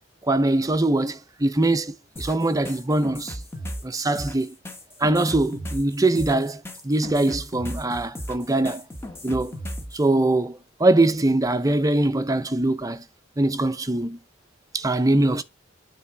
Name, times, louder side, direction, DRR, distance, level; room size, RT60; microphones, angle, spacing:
voice 1, 0.2-3.4 3.8-4.6 5.0-8.8 9.2-9.6 9.9-13.0 13.4-14.2 14.7-15.4, right 2 dB, 20° right, 0.5 m, -22 dB
sound 1, 2.2-10.0, equal, 15° left, 1.1 m, -36 dB
8.6 x 3.5 x 4.5 m
head